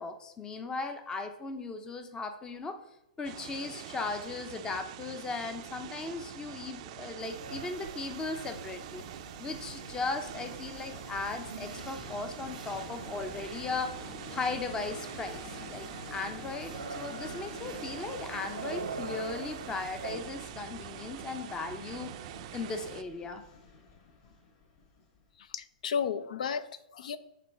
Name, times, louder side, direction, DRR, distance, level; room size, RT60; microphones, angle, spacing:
voice 1, 0.0-2.8 3.2-9.1 9.4-14.0 14.3-22.1 22.5-23.4, left 3 dB, 15° left, 8 dB, 0.7 m, -37 dB
sound 1, 3.2-23.0, right 12 dB, 50° right, 0.5 m, -45 dB
sound 2, 7.2-20.2, right 4 dB, 90° right, 1.0 m, -45 dB
Train, 7.6-25.4, left 4 dB, 40° left, 2.0 m, -49 dB
voice 2, 25.4-27.2, left 7 dB, 65° left, 13 dB, 0.6 m, -33 dB
8.5 x 3.8 x 5.6 m, 0.86 s
hypercardioid pair, 115°, 4 cm